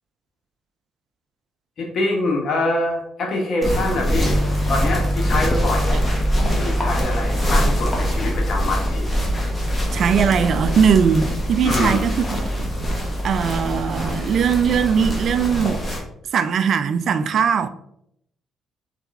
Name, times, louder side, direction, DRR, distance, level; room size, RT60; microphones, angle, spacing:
voice 1, 1.8-4.4 4.7-6.0 6.5-9.0 11.6-12.1, left 2 dB, 60° left, 1.4 m, -24 dB
sound 1, 3.6-16.0, equal, 25° left, 1.4 m, -25 dB
Piano, 4.2-15.5, equal, ahead, 0.7 m, -26 dB
voice 2, 9.9-12.7 13.2-15.8 16.3-17.7, right 7 dB, 65° right, 0.3 m, -20 dB
4.0 x 3.6 x 3.5 m
cardioid pair, 90°, 0 cm